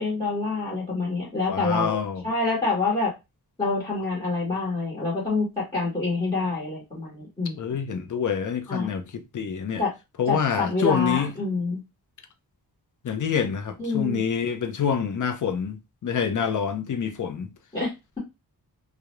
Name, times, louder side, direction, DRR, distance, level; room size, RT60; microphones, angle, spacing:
voice 1, 0.0-3.1 3.6-7.6 8.7-8.9 9.8-9.9 10.3-11.8 13.8-14.2 17.7-17.9, left 3 dB, 15° left, 1.0 m, -26 dB
voice 2, 1.5-2.2 7.6-9.8 10.2-11.3 13.0-15.8 16.0-17.5, left 7 dB, 55° left, 0.5 m, -27 dB
2.3 x 2.0 x 2.9 m
wide cardioid pair, 125°, 38 cm